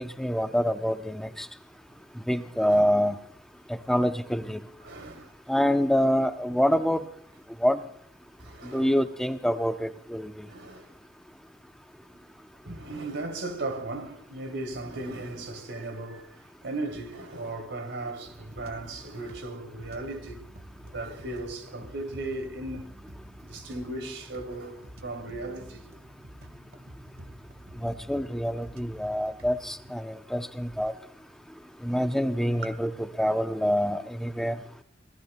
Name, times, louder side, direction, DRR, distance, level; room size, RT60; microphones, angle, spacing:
voice 1, 0.0-1.5 2.2-3.2 3.7-4.6 5.5-7.0 7.6-7.8 8.6-10.5 27.8-30.9 31.8-34.6, equal, ahead, 0.6 m, -26 dB
voice 2, 2.6-2.9 4.8-5.3 8.4-8.9 10.4-10.9 12.1-12.3 12.6-20.4 20.8-22.9 23.4-25.9 32.6-32.8, right 2 dB, 85° right, 3.0 m, -37 dB
sound 1, 18.2-29.9, equal, 60° right, 1.4 m, -48 dB
26.0 x 18.5 x 2.2 m
head